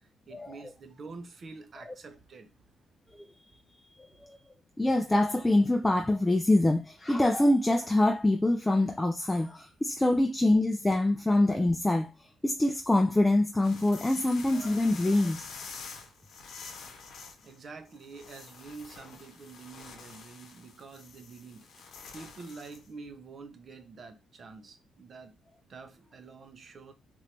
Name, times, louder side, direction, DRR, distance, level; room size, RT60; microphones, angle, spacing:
voice 1, 0.0-2.5 15.8-16.3 17.4-25.3 25.7-26.9, right 4 dB, 45° right, 0.7 m, -47 dB
voice 2, 4.8-15.5, left 1 dB, 10° left, 0.4 m, -25 dB
sound 1, 13.6-22.9, left 5 dB, 70° left, 0.8 m, -47 dB
3.0 x 2.5 x 3.3 m
cardioid pair, 90°, 0 cm